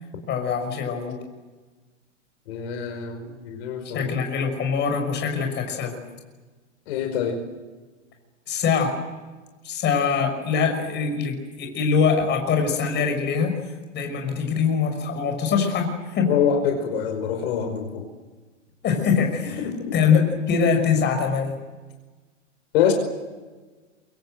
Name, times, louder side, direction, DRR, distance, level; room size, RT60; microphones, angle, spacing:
voice 1, 0.3-1.2 3.9-5.9 8.5-9.0 9.6-13.5 13.9-16.3 18.8-19.6 19.9-21.6, left 6 dB, 30° left, 4 dB, 6.0 m, -23 dB
voice 2, 2.5-4.1 6.9-7.4 16.3-18.0 19.4-19.9 22.7-22.9, left 8 dB, 55° left, 4 dB, 5.2 m, -25 dB
27.5 x 24.0 x 7.9 m, 1.3 s
hypercardioid pair, 115°, 37 cm